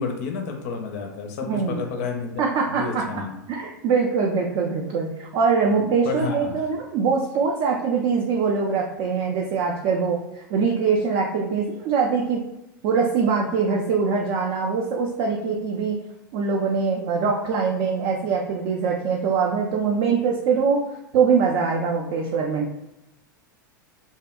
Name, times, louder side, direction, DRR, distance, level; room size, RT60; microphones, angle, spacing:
voice 1, 0.0-2.4 2.7-3.3 5.7-6.6, left 5 dB, 50° left, 3 dB, 0.4 m, -30 dB
voice 2, 1.5-1.8 2.4-3.2 3.5-12.4 12.8-16.0 16.3-20.8 21.1-22.7, right 5 dB, 40° right, 0 dB, 0.3 m, -23 dB
2.7 x 2.0 x 2.3 m, 0.88 s
figure-of-eight pair, 85°, 11 cm